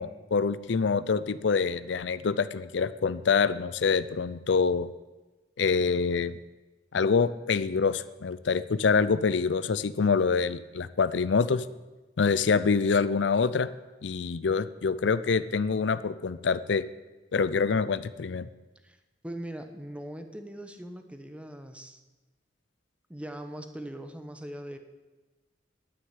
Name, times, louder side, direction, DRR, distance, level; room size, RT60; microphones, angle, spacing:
voice 1, 0.0-4.9 5.6-6.3 6.9-11.6 12.2-13.7 14.0-16.8 17.3-18.5, left 5 dB, 70° left, 15 dB, 0.5 m, -26 dB
voice 2, 19.2-22.0 23.1-24.8, right 1 dB, 5° right, 7 dB, 1.1 m, -40 dB
9.7 x 9.5 x 9.7 m, 1.2 s
head